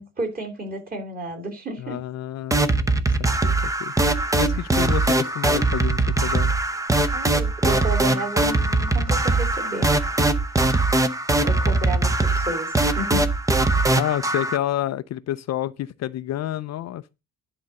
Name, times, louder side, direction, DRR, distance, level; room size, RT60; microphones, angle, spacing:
voice 1, 0.0-2.0 4.5-4.6 7.1-9.9 11.4-13.3, right 2 dB, 25° right, 2.9 m, -31 dB
voice 2, 1.8-3.9 4.3-6.5 14.0-17.2, left 13 dB, 50° left, 0.5 m, -29 dB
sound 1, 2.5-14.6, right 2 dB, 10° right, 0.7 m, -21 dB
11.0 x 4.0 x 6.5 m
cardioid pair, 140°, 33 cm